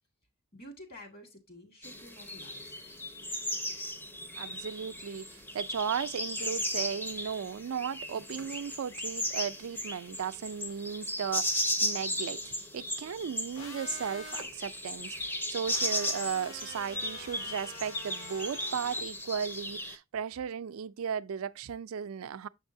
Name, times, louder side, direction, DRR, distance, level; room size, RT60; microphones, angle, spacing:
voice 1, 0.5-2.9, equal, 45° left, 1.9 m, -50 dB
sound 1, 1.8-20.0, left 1 dB, 10° left, 0.6 m, -36 dB
voice 2, 4.4-22.5, right 7 dB, 75° right, 0.4 m, -36 dB
sound 2, 13.5-14.5 15.7-19.0, left 1 dB, 70° left, 2.0 m, -46 dB
6.5 x 6.1 x 2.6 m
head